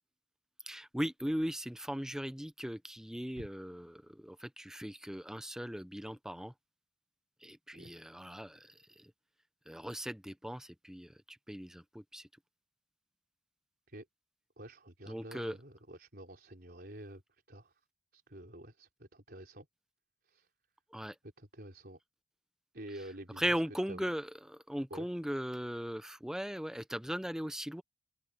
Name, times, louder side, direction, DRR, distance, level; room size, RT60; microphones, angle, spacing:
voice 1, 0.6-6.5 7.4-9.1 9.7-12.3 15.1-15.6 20.9-21.2 23.4-27.8, equal, 5° right, 0.6 m, -38 dB
voice 2, 14.6-17.8 18.1-19.7 20.2-20.5 21.4-22.0 22.7-23.6 23.9-24.1 24.9-25.1, right 1 dB, 45° right, 4.6 m, -49 dB
open air
head